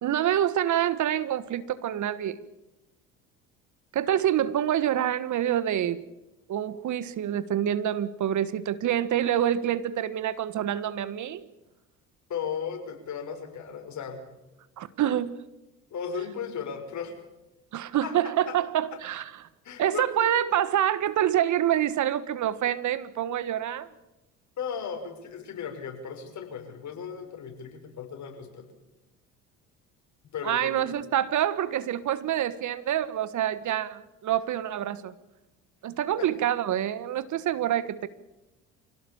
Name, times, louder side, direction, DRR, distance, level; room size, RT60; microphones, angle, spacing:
voice 1, 0.0-2.4 3.9-6.0 6.5-11.4 14.8-15.4 17.7-19.3 19.8-23.9 30.4-35.1 35.8-38.1, right 11 dB, 50° right, 15 dB, 1.5 m, -26 dB
voice 2, 12.3-14.2 15.9-17.1 18.0-18.1 18.5-18.6 19.6-20.3 24.6-28.6 30.3-30.9 36.2-36.3, left 7 dB, 50° left, 5 dB, 6.0 m, -36 dB
26.0 x 17.5 x 7.1 m, 0.99 s
hypercardioid pair, 65°, 37 cm